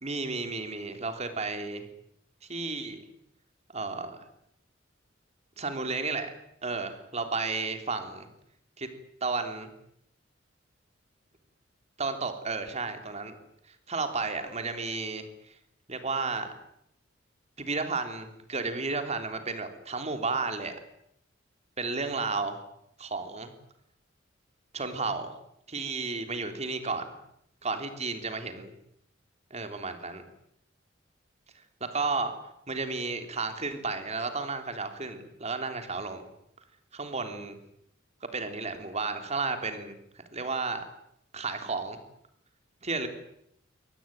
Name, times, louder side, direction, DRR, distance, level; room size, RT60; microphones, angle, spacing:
voice 1, 0.0-1.8 2.5-3.0 3.7-4.2 5.6-6.3 6.6-8.3 8.8-8.9 9.2-9.7 12.0-13.4 13.7-15.5 15.9-16.5 17.6-20.7 21.8-22.6 23.0-23.5 24.7-25.3 25.7-27.1 27.6-28.7 29.5-30.3 31.8-32.4 32.7-36.3 36.9-37.6 38.3-40.8 41.3-42.0 42.8-43.1, right 3 dB, 35° right, 7 dB, 3.4 m, -33 dB
23.5 x 18.5 x 9.2 m, 0.75 s
head